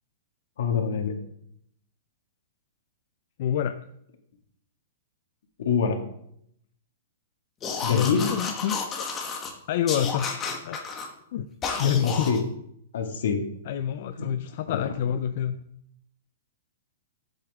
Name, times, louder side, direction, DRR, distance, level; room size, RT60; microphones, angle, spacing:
voice 1, 0.6-1.2 5.6-6.0 7.8-8.3 11.8-12.4 12.9-13.4 14.1-14.3, left 6 dB, 75° left, 3 dB, 1.9 m, -25 dB
voice 2, 3.4-3.8 7.9-9.1 9.7-10.8 11.3-11.5 11.8-12.3 13.7-15.6, left 9 dB, 50° left, 9 dB, 0.4 m, -27 dB
sound 1, 7.6-9.5 9.9-11.1 11.6-12.4, left 5 dB, 20° left, 1.3 m, -31 dB
10.5 x 7.9 x 3.5 m, 0.73 s
hypercardioid pair, 165°, 0 cm